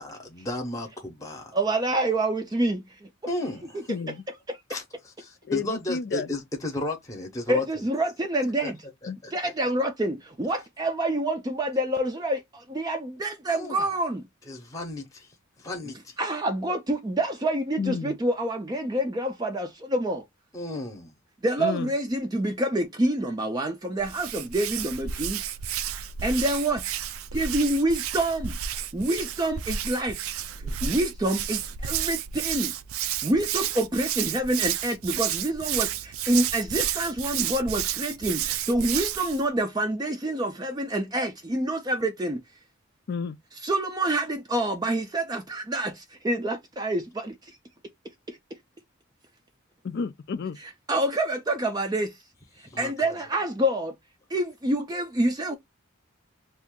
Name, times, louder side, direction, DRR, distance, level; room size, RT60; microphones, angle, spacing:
voice 1, 0.0-1.5 3.3-3.9 4.7-7.6 8.6-8.7 9.0-9.3 13.5-13.9 14.5-15.3 15.6-16.2 20.5-21.1 52.6-53.1, left 1 dB, 15° left, 0.8 m, -34 dB
voice 2, 1.5-3.1 3.7-3.8 4.5-4.6 7.5-8.8 9.3-14.3 16.2-20.2 21.4-25.4 26.2-27.0 27.3-28.6 28.9-30.2 30.6-32.7 33.2-42.4 43.6-47.6 48.3-48.4 50.9-52.2 52.8-53.9 54.3-55.5, right 1 dB, 20° right, 0.4 m, -27 dB
voice 3, 3.9-4.2 5.4-6.3 9.1-9.2 17.8-18.1 21.6-21.9 43.1-43.4 49.8-50.6, left 5 dB, 50° left, 0.4 m, -31 dB
Hands, 24.0-39.4, right 9 dB, 85° right, 0.4 m, -31 dB
2.7 x 2.4 x 3.5 m
head